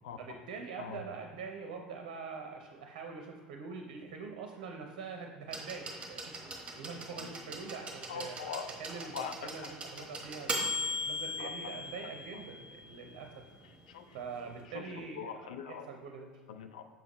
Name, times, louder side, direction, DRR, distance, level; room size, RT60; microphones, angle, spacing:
voice 1, 0.2-8.4 8.8-10.7 11.0-13.3 14.1-15.3 15.7-16.3, right 5 dB, 60° right, 3 dB, 0.7 m, -44 dB
sound 1, 5.5-13.3 14.4-14.5, left 1 dB, 20° right, 1.2 m, -39 dB
voice 2, 7.2-7.5 8.1-8.7 9.0-9.7 11.4-11.7 12.3-12.4 13.6-14.2 14.6-15.9 16.5-16.8, left 7 dB, 65° left, 7 dB, 0.5 m, -43 dB
7.0 x 5.9 x 3.0 m, 1.5 s
figure-of-eight pair, 70°, 4 cm